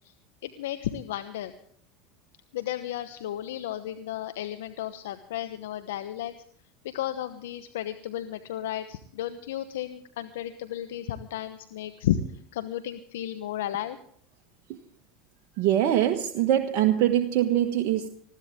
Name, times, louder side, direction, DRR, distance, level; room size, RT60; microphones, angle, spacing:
voice 1, 0.4-1.5 2.5-6.3 6.8-12.2 12.5-14.0, left 12 dB, 80° left, 10 dB, 1.0 m, -33 dB
voice 2, 15.6-18.1, right 11 dB, 60° right, 4 dB, 1.4 m, -23 dB
20.5 x 15.0 x 3.7 m, 0.62 s
hypercardioid pair, 90°, 0 cm